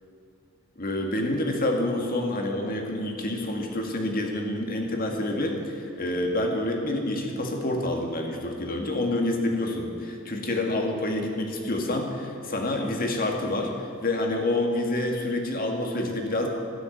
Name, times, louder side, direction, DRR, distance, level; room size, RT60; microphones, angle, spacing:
voice 1, 0.8-13.7 14.0-16.5, left 1 dB, 45° left, 2 dB, 2.1 m, -27 dB
13.0 x 9.9 x 9.5 m, 2.5 s
head